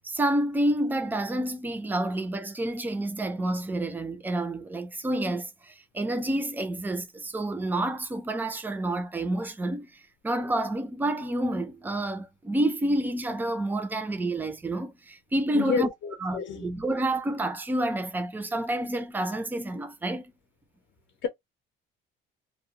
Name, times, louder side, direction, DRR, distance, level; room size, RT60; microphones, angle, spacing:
voice 1, 0.0-9.9 10.2-15.9 16.2-20.3, right 1 dB, 10° right, 0.3 m, -29 dB
voice 2, 15.5-16.6 21.2-21.3, left 7 dB, 65° left, 0.6 m, -29 dB
2.8 x 2.0 x 2.6 m
cardioid pair, 165°, 21 cm